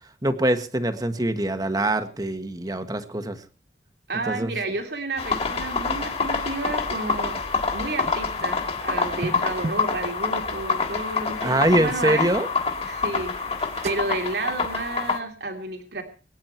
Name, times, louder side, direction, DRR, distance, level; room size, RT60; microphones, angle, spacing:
voice 1, 0.2-3.4 4.3-4.5 11.4-12.5, right 1 dB, 20° right, 8 dB, 1.5 m, -23 dB
voice 2, 4.1-7.4 7.7-12.3 12.8-16.0, right 2 dB, 70° right, 4 dB, 2.7 m, -31 dB
sound 1, 5.2-15.2, left 4 dB, 35° left, 3.1 m, -27 dB
sound 2, 8.0-10.0 11.3-11.4 11.9-12.4 12.8-13.0 13.3-14.1, right 2 dB, 40° right, 1.1 m, -36 dB
24.0 x 10.0 x 4.5 m, 0.38 s
head